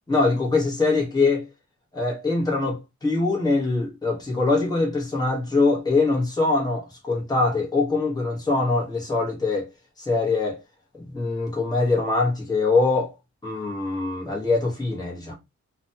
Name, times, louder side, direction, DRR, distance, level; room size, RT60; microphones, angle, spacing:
voice 1, 0.1-1.4 1.9-9.7 10.0-10.6 11.0-13.1 13.4-15.4, left 3 dB, 15° left, 1.0 m, -23 dB
2.6 x 2.2 x 2.7 m
wide cardioid pair, 115°, 30 cm